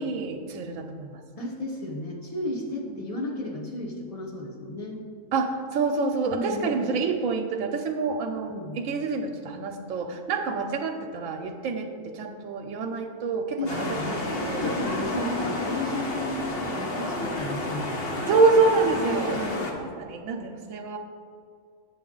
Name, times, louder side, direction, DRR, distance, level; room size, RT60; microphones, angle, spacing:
voice 1, 0.0-1.2 2.9-3.0 5.3-14.8 15.1-15.3 18.3-19.4 19.8-21.0, right 4 dB, 85° right, 3 dB, 1.0 m, -27 dB
voice 2, 1.4-5.0 6.3-6.9 8.5-8.8 13.6-14.2 14.6-18.2 18.9-19.9, left 1 dB, 30° left, 0 dB, 1.0 m, -33 dB
sound 1, 13.7-19.7, left 1 dB, 50° left, 1.2 m, -30 dB
7.9 x 7.2 x 3.8 m, 2.1 s
omnidirectional pair, 1.4 m